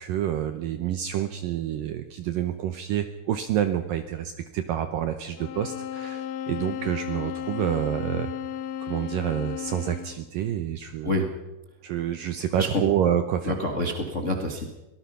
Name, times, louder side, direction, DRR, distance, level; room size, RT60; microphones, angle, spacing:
voice 1, 0.0-8.3 8.8-11.1 11.8-13.6, right 10 dB, 75° right, 9 dB, 2.1 m, -28 dB
sound 1, 5.4-10.3, left 10 dB, 90° left, 3.4 m, -34 dB
voice 2, 13.4-14.7, left 1 dB, 60° left, 3 dB, 0.7 m, -27 dB
24.5 x 19.0 x 5.7 m, 1.0 s
omnidirectional pair, 5.0 m